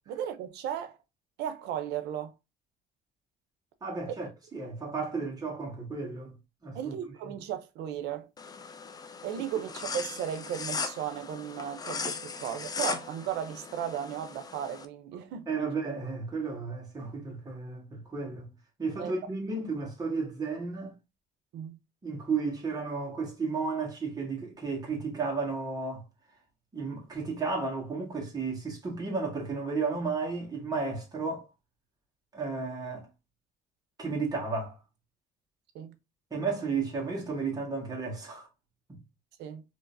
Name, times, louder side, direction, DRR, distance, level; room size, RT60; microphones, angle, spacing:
voice 1, 0.1-1.0 1.4-2.3 4.1-4.2 6.7-8.3 9.2-15.7 19.0-19.1 21.5-21.8 35.7-36.0 39.4-39.6, right 9 dB, 80° right, 0.6 m, -35 dB
voice 2, 3.8-6.3 6.6-7.0 15.5-18.5 18.8-21.0 22.0-26.0 26.7-31.5 32.3-33.1 34.0-34.8 36.3-38.5, right 4 dB, 20° right, 1.6 m, -33 dB
sound 1, 8.4-14.8, left 5 dB, 20° left, 0.4 m, -38 dB
3.7 x 2.9 x 2.6 m
cardioid pair, 110°, 17 cm